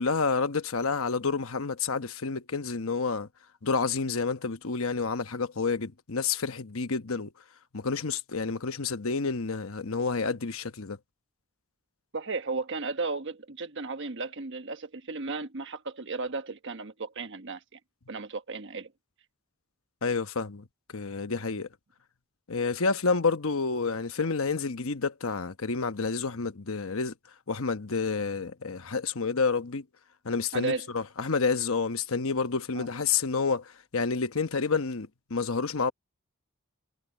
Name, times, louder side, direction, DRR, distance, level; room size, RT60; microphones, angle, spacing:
voice 1, 0.0-3.3 3.6-7.3 7.7-11.0 20.0-20.6 20.9-21.7 22.5-27.1 27.5-29.8 30.2-35.9, left 4 dB, 65° left, 1.1 m, -29 dB
voice 2, 12.1-17.8 18.1-18.9 30.5-30.9 32.7-32.9, right 3 dB, 55° right, 1.3 m, -34 dB
head